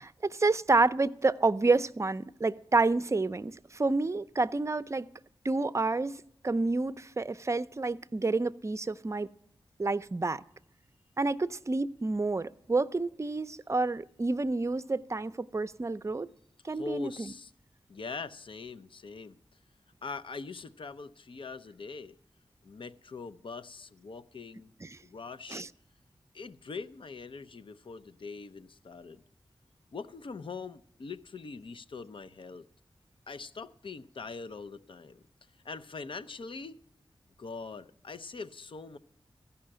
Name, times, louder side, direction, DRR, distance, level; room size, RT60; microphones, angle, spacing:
voice 1, 0.0-5.1 5.4-9.3 9.8-10.4 11.2-16.3 16.6-17.3 24.8-25.0 25.5-25.7, right 3 dB, 30° right, 0.5 m, -29 dB
voice 2, 16.7-17.5 17.9-19.4 20.0-22.2 22.6-24.7 25.0-25.6 26.3-29.2 29.9-32.7 33.3-35.2 35.6-36.8 37.4-39.0, left 4 dB, 65° left, 0.6 m, -42 dB
14.5 x 5.7 x 8.7 m
cardioid pair, 50°, 9 cm